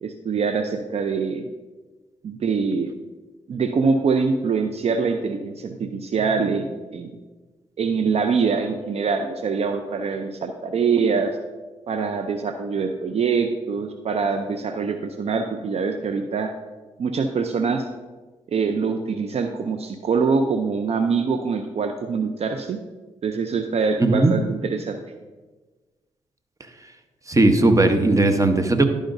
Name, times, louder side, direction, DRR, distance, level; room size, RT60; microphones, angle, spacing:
voice 1, 0.0-1.5 2.2-2.9 3.5-7.2 7.8-11.4 11.9-16.5 17.0-17.9 18.5-22.8 23.2-25.0, right 5 dB, 55° right, 7 dB, 0.5 m, -24 dB
voice 2, 24.0-24.4 27.3-28.9, right 2 dB, 25° right, 7 dB, 1.0 m, -17 dB
11.5 x 5.0 x 2.6 m, 1.3 s
supercardioid pair, 45°, 12 cm